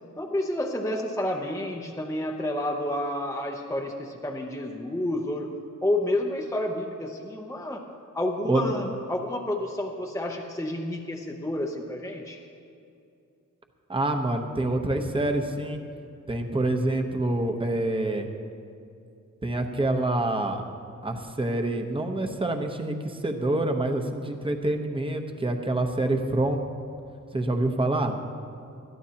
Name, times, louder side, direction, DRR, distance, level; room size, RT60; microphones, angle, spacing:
voice 1, 0.2-5.5 5.8-7.8 8.1-12.4, left 1 dB, 10° left, 0 dB, 0.7 m, -30 dB
voice 2, 13.9-15.8 16.3-18.3 19.4-20.6 21.0-26.6 27.3-28.2, right 2 dB, 15° right, 4 dB, 0.9 m, -26 dB
21.5 x 14.0 x 2.9 m, 2.6 s
wide cardioid pair, 160°, 32 cm